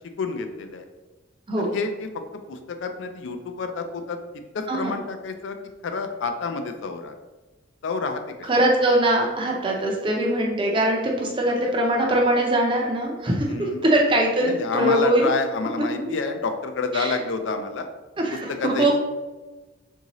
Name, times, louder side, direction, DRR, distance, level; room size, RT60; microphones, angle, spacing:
voice 1, 0.2-0.9 1.6-4.2 4.5-5.6 5.8-7.1 7.8-8.5 11.6-12.2 13.5-13.8 14.4-17.9 18.3-19.0, left 4 dB, 65° left, 7 dB, 0.4 m, -29 dB
voice 2, 8.5-15.3 16.1-16.2 16.9-17.2 18.2-19.0, right 1 dB, 25° right, -1 dB, 0.5 m, -22 dB
3.6 x 2.7 x 3.0 m, 1.2 s
head